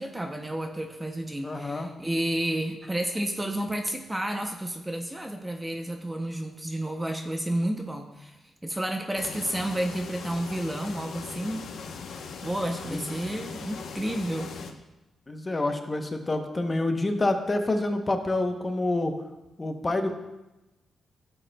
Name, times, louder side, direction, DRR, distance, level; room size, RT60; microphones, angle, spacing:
voice 1, 0.0-11.7 12.4-14.5, right 1 dB, 10° right, 4 dB, 0.6 m, -31 dB
voice 2, 1.4-1.9 12.9-13.0 15.3-19.2 19.6-20.1, left 2 dB, 20° left, 6 dB, 0.8 m, -27 dB
sound 1, 9.1-14.7, left 5 dB, 75° left, 0.8 m, -40 dB
14.5 x 7.7 x 2.2 m, 1.0 s
wide cardioid pair, 140°, 0 cm